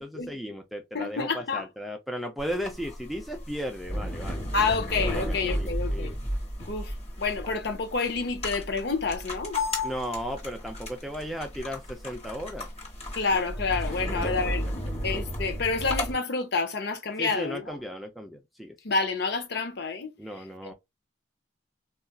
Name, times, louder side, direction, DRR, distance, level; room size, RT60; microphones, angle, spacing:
voice 1, 0.0-4.4 5.1-6.2 9.8-12.7 13.9-14.5 17.2-18.7 20.2-20.7, equal, ahead, 0.4 m, -36 dB
voice 2, 0.9-1.6 4.5-6.1 6.7-9.6 13.2-14.6 15.0-17.8 18.8-20.1 20.6-20.7, left 4 dB, 55° left, 0.6 m, -28 dB
sound 1, 2.4-16.1, left 1 dB, 30° left, 1.0 m, -33 dB
4.0 x 2.4 x 2.2 m
head